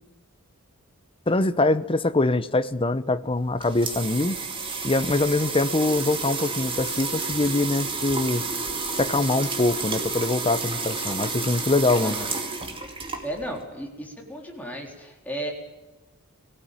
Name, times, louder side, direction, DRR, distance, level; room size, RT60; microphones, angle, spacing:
voice 1, 1.3-4.4 4.8-8.4 9.0-12.2, left 2 dB, 25° left, 12 dB, 0.8 m, -23 dB
sound 1, 3.3-13.6, right 4 dB, 25° right, 2.4 m, -30 dB
voice 2, 12.0-12.4 13.2-15.5, right 1 dB, 5° left, 0 dB, 3.7 m, -34 dB
20.5 x 17.0 x 8.9 m, 1.2 s
head